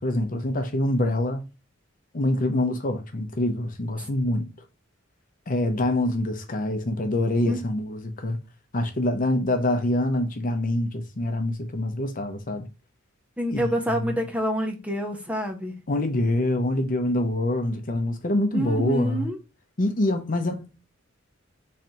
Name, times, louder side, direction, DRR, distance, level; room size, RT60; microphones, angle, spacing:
voice 1, 0.0-1.4 2.1-4.4 5.5-8.4 8.7-12.7 13.5-14.2 15.9-19.3 19.8-20.8, left 1 dB, 45° left, 0.8 m, -25 dB
voice 2, 13.4-15.7 18.5-19.4, equal, 5° right, 0.8 m, -27 dB
4.0 x 3.3 x 2.8 m
head